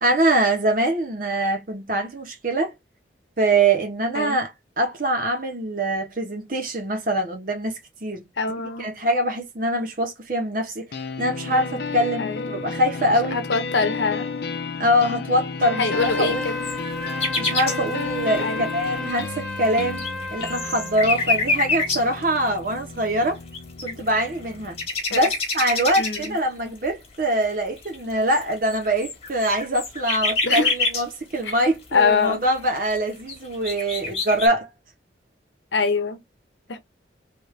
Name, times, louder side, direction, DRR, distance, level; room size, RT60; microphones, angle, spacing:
voice 1, 0.0-2.7 3.4-4.5 4.8-8.3 8.8-10.9 11.2-13.4 14.8-16.5 17.4-18.5 18.7-20.0 20.3-23.4 23.8-24.7 25.1-34.7, right 1 dB, 50° right, 1.2 m, -23 dB
voice 2, 8.4-8.9 12.2-12.5 13.3-14.3 15.7-16.5 18.4-18.6 25.1-25.3 26.0-26.4 30.4-30.7 31.4-31.5 31.9-32.4 35.7-36.2 36.7-36.8, left 4 dB, 75° left, 0.8 m, -24 dB
sound 1, 10.9-24.9, left 4 dB, 55° left, 0.5 m, -33 dB
Trumpet, 15.6-21.0, left 2 dB, 5° left, 0.6 m, -33 dB
sound 2, 16.2-17.7 19.1-19.2 19.7-22.2 23.2-23.3 23.5-24.3 24.6-26.4 27.0-27.1 27.8-31.0 32.3-32.4 32.9-33.0 33.3-34.5, left 3 dB, 35° left, 1.3 m, -26 dB
3.4 x 2.7 x 3.2 m
head